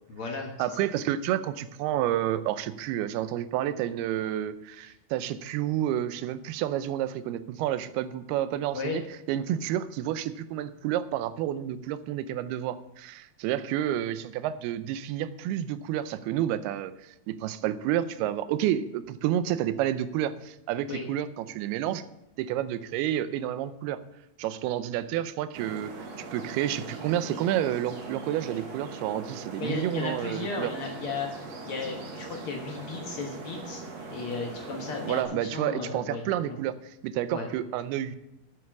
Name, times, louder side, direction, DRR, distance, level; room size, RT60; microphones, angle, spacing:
voice 1, 0.1-0.5 8.7-9.0 20.9-21.0 29.6-31.3 31.6-33.8 34.1-36.6 37.3-37.5, left 4 dB, 90° left, 1 dB, 1.2 m, -35 dB
voice 2, 0.6-9.0 9.3-22.0 22.4-24.0 24.4-30.7 35.1-38.2, right 11 dB, 85° right, 13 dB, 2.6 m, -30 dB
sound 1, 25.5-35.2, right 3 dB, 50° right, 2.4 m, -41 dB
9.7 x 8.6 x 5.9 m, 0.84 s
omnidirectional pair, 4.5 m